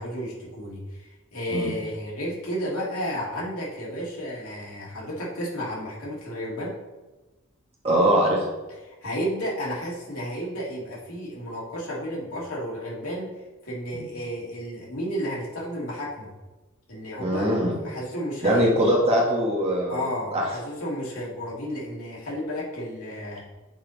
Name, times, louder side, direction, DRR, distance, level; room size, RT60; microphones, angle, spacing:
voice 1, 0.0-6.7 8.8-13.3 13.6-16.3 16.9-19.0 19.9-23.4, equal, 80° left, -5 dB, 2.1 m, -32 dB
voice 2, 7.8-8.4 13.9-14.0 17.2-17.7 18.4-20.1 20.3-20.4, right 1 dB, 25° right, -3 dB, 1.4 m, -22 dB
8.6 x 4.2 x 4.0 m, 1.2 s
head